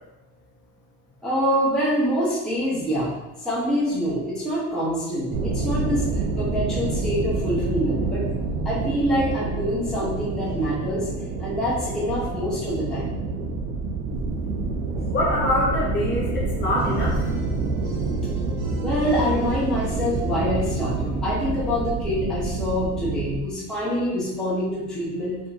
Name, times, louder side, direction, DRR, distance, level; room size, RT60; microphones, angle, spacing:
voice 1, 1.2-3.1 3.4-8.3 8.6-11.1 11.4-13.1 14.9-15.1 18.8-25.4, equal, ahead, -9 dB, 0.8 m, -25 dB
sound 1, 5.3-23.4, right 3 dB, 55° right, 0.6 m, -27 dB
voice 2, 15.1-17.2, left 1 dB, 35° left, -5 dB, 1.0 m, -24 dB
sound 2, 16.8-22.0, right 3 dB, 75° right, 1.1 m, -45 dB
4.9 x 2.6 x 2.8 m, 0.97 s
cardioid pair, 165°, 32 cm